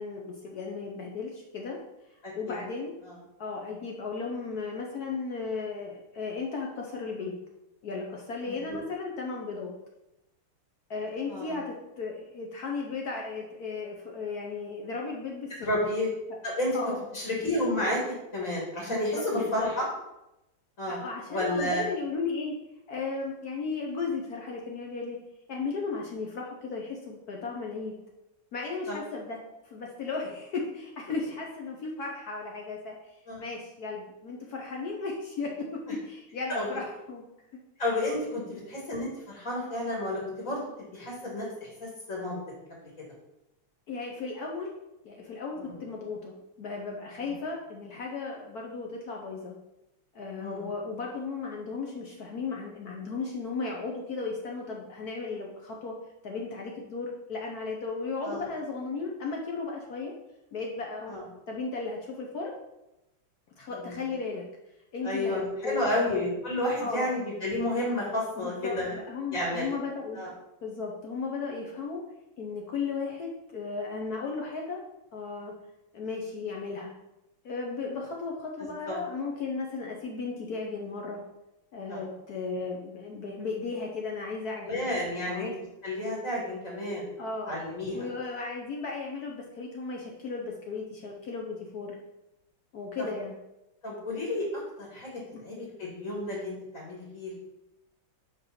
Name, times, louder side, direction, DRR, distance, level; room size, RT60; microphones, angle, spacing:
voice 1, 0.0-1.8 2.4-2.9 3.4-7.3 7.8-9.7 10.9-15.5 16.7-17.0 18.9-19.7 20.8-22.5 22.9-25.2 25.5-28.0 28.5-33.0 33.4-37.2 38.3-38.5 43.9-44.7 45.0-49.5 50.1-55.9 56.2-60.1 60.5-61.1 61.5-62.5 63.6-64.5 64.9-66.2 66.8-67.1 68.4-70.2 70.6-72.0 72.4-74.8 75.1-75.5 75.9-76.9 77.4-81.2 81.7-84.9 85.3-85.6 87.2-87.6 87.9-91.9 92.7-93.4 95.3-95.4, left 4 dB, 60° left, 0 dB, 1.1 m, -35 dB
voice 2, 2.2-2.6 3.0-3.1 8.4-8.8 11.3-11.5 15.6-16.1 16.4-16.7 17.1-18.0 18.3-19.8 20.8-21.0 21.3-21.8 28.9-29.0 33.3-33.4 36.5-36.8 37.8-40.6 40.9-42.4 42.7-42.9 45.6-45.7 47.2-47.3 50.4-50.7 58.2-58.5 61.1-61.2 63.7-64.0 65.0-68.9 69.3-69.7 70.1-70.3 78.9-79.0 81.9-82.0 84.7-85.5 85.8-87.1 87.5-88.1 93.0-93.1 93.8-95.1 95.4-97.4, left 1 dB, 40° left, -4 dB, 2.0 m, -31 dB
4.8 x 4.5 x 5.8 m, 0.92 s
omnidirectional pair, 2.3 m